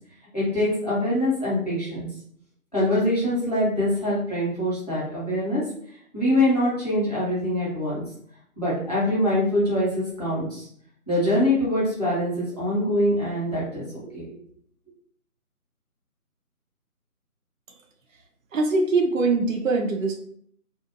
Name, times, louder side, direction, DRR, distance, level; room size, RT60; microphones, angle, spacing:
voice 1, 0.3-2.1 2.7-5.6 6.1-8.0 8.6-10.7 11.1-14.4, left 1 dB, 25° left, -9 dB, 0.9 m, -24 dB
voice 2, 18.5-20.2, right 3 dB, 60° right, 2 dB, 0.5 m, -22 dB
2.6 x 2.3 x 2.6 m, 0.62 s
figure-of-eight pair, 165°, 45 cm